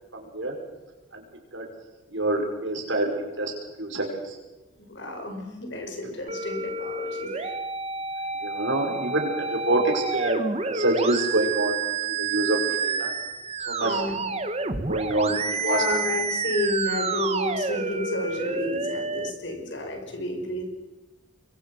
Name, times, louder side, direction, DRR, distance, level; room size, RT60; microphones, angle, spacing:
voice 1, 0.1-0.5 1.1-1.2 1.5-1.7 2.1-3.5 3.8-4.4 8.4-11.9 12.2-13.1 13.7-14.0 14.9-15.8, right 2 dB, 60° right, 2 dB, 5.8 m, -26 dB
voice 2, 4.8-7.6 13.8-14.3 15.6-20.6, left 2 dB, 55° left, 4 dB, 5.5 m, -31 dB
sound 1, 6.3-19.3, right 4 dB, 30° right, 1.4 m, -29 dB
27.0 x 23.0 x 6.3 m, 1.1 s
head